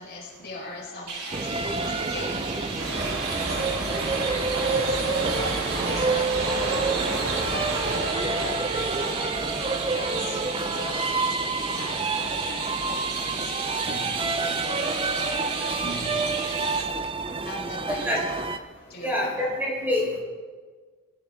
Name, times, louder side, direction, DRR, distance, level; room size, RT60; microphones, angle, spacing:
voice 1, 0.0-7.0 7.5-18.5 18.9-19.4, left 1 dB, 45° left, -3 dB, 4.7 m, -40 dB
Chirp tweet, 1.1-16.8, right 4 dB, 90° right, 3.1 m, -34 dB
sound 1, 1.3-18.6, right 3 dB, 25° right, 0.5 m, -29 dB
sound 2, 2.8-10.2 10.5-10.9, right 3 dB, 60° right, 1.7 m, -32 dB
voice 2, 17.9-18.2 19.0-20.2, left 1 dB, 10° right, -4 dB, 4.4 m, -27 dB
21.5 x 13.0 x 3.6 m, 1.5 s
head